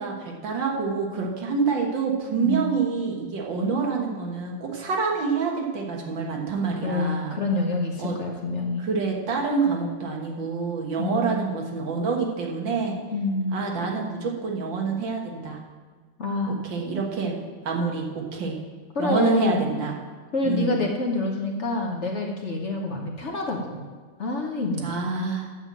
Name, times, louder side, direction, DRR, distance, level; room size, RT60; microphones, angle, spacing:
voice 1, 0.0-7.4 8.0-8.1 8.8-13.0 13.5-15.6 16.6-17.4 17.6-18.6 19.0-19.9 20.4-20.8 24.8-25.5, right 4 dB, 80° right, 0 dB, 2.2 m, -27 dB
voice 2, 6.8-8.8 11.0-11.5 13.1-13.6 16.2-16.6 18.9-19.7 20.3-23.9 24.2-25.1, left 2 dB, 45° left, 1 dB, 1.2 m, -27 dB
8.0 x 7.2 x 7.4 m, 1.5 s
omnidirectional pair, 2.0 m